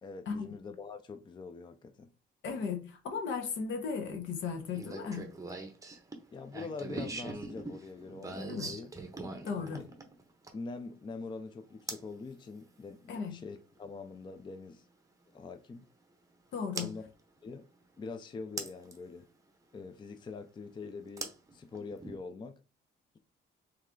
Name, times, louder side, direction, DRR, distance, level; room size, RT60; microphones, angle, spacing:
voice 1, 0.0-2.1 6.3-8.9 9.5-9.9 10.5-14.9 15.3-15.9 16.7-17.0 17.4-17.7 18.0-19.3 19.7-22.6, left 4 dB, 25° left, 0.4 m, -44 dB
voice 2, 2.4-5.3 8.5-8.7 9.4-9.8 13.1-13.3 16.5-16.9, left 5 dB, 70° left, 1.0 m, -36 dB
sound 1, 4.7-10.7 11.9-12.1 14.0-14.1 16.8-16.9 18.6-19.0 21.2-22.2, right 2 dB, 15° right, 0.8 m, -41 dB
3.5 x 3.2 x 3.7 m
cardioid pair, 125°, 20 cm